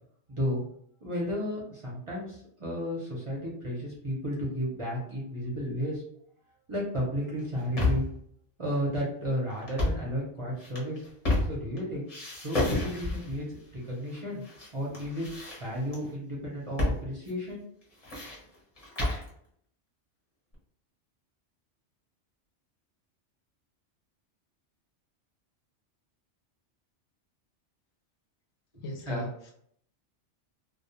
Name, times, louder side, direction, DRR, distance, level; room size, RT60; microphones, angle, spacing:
voice 1, 0.3-0.6 1.0-6.0 6.7-8.1 8.6-11.0 11.5-12.1 12.4-14.4 14.7-15.3 15.6-17.6 28.7-29.3, equal, 35° right, -5 dB, 0.6 m, -33 dB
sound 1, 7.4-8.2 9.6-10.1 10.6-11.8 12.1-13.4 14.1-14.7 14.9-16.0 16.8-17.0 17.3-17.4 17.8-19.3, left 2 dB, 35° left, 0.8 m, -30 dB
voice 2, 28.8-29.5, left 2 dB, 70° left, 2 dB, 0.8 m, -38 dB
2.3 x 2.2 x 2.8 m, 0.66 s
omnidirectional pair, 1.2 m